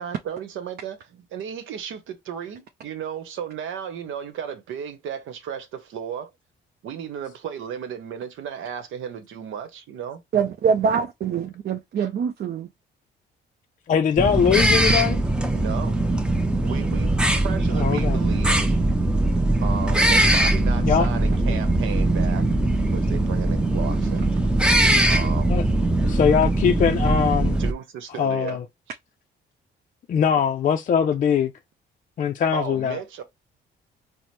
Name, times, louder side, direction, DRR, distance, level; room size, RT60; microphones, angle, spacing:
voice 1, 0.0-6.3 6.8-10.2 15.5-16.0 16.6-17.2 17.4-18.8 19.6-22.5 22.9-24.3 25.1-25.5 27.5-28.6 28.9-29.0 32.5-33.2, right 8 dB, 80° right, 0.9 m, -34 dB
voice 2, 10.3-12.7, right 6 dB, 55° right, 0.5 m, -24 dB
voice 3, 13.9-15.2 17.8-18.2 20.8-21.1 25.5-25.6 26.0-27.6 28.2-28.6 30.1-31.5 32.2-33.0, left 7 dB, 40° left, 0.4 m, -21 dB
sound 1, 14.2-27.7, right 1 dB, 5° right, 0.6 m, -21 dB
4.2 x 2.0 x 3.2 m
cardioid pair, 90°, 20 cm